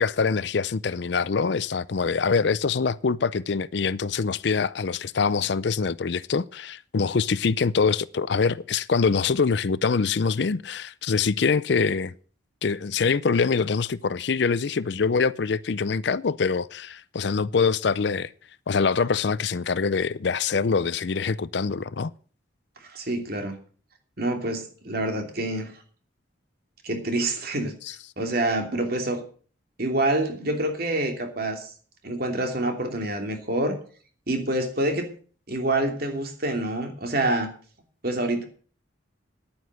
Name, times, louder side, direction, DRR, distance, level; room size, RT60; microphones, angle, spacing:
voice 1, 0.0-12.1 12.6-18.3 18.7-22.1 27.8-27.9, left 5 dB, 60° left, 0.5 m, -24 dB
voice 2, 22.8-23.6 24.2-25.7 26.8-27.8 28.2-29.2 29.8-31.7 32.0-33.8 34.3-35.1 35.5-37.5 38.0-38.4, right 1 dB, 50° right, 2.9 m, -27 dB
10.5 x 9.4 x 7.6 m
head